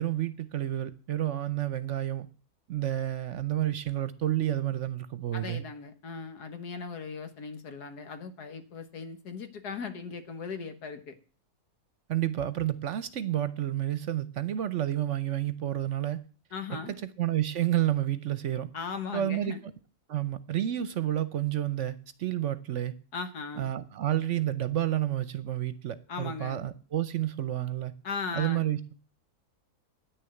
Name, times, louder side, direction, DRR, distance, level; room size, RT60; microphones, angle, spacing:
voice 1, 0.0-2.3 2.7-5.6 12.1-16.2 16.7-16.8 17.2-18.7 19.1-19.6 20.1-22.9 23.6-27.9 28.3-28.9, right 12 dB, 60° right, 0.9 m, -30 dB
voice 2, 5.3-11.2 16.5-17.0 18.7-19.6 23.1-23.7 26.1-26.6 28.0-28.7, left 5 dB, 90° left, 1.9 m, -38 dB
9.8 x 6.8 x 8.8 m
omnidirectional pair, 1.6 m